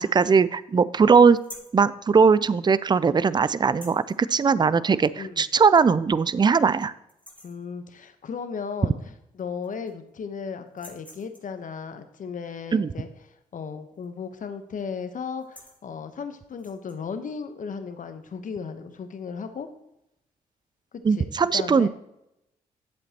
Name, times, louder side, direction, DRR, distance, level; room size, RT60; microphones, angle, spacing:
voice 1, 0.0-1.4 1.7-6.9 12.7-12.9 21.0-21.9, right 5 dB, 25° right, 17 dB, 0.4 m, -20 dB
sound 1, 1.4-1.8 3.6-4.2 5.5-5.6 6.1-6.2 6.6-6.8 7.1-7.6 9.0-9.1 9.4-10.1 10.7-11.6 13.9-14.3 14.5-14.8 15.3-15.8 16.5-17.0, left 1 dB, 10° left, 2.6 m, -48 dB
voice 2, 7.4-13.1 13.5-19.7 20.9-21.9, left 6 dB, 55° left, 9 dB, 1.1 m, -35 dB
10.5 x 7.9 x 3.0 m, 0.84 s
hypercardioid pair, 45°, 16 cm